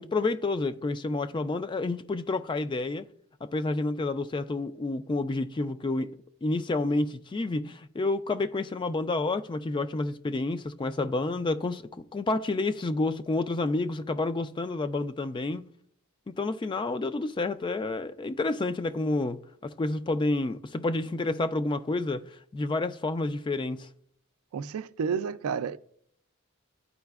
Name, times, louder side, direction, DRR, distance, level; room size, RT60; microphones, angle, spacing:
voice 1, 0.0-3.1 3.4-6.1 6.4-15.7 16.3-22.2 22.5-23.9, left 2 dB, 20° left, 0.3 m, -29 dB
voice 2, 24.5-25.8, right 6 dB, 85° right, 0.4 m, -30 dB
12.5 x 4.8 x 2.3 m
head